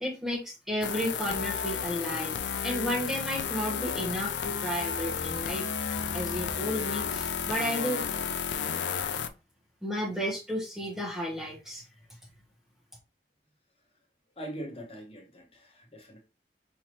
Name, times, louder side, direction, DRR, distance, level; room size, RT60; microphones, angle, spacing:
voice 1, 0.0-8.0 9.8-11.8, equal, 5° right, 1.0 m, -33 dB
sound 1, 0.8-9.3, left 7 dB, 85° left, 0.5 m, -32 dB
sound 2, 4.7-8.8, right 1 dB, 20° right, 0.8 m, -46 dB
voice 2, 14.4-16.2, right 1 dB, 35° left, 1.1 m, -42 dB
5.6 x 3.0 x 2.9 m
head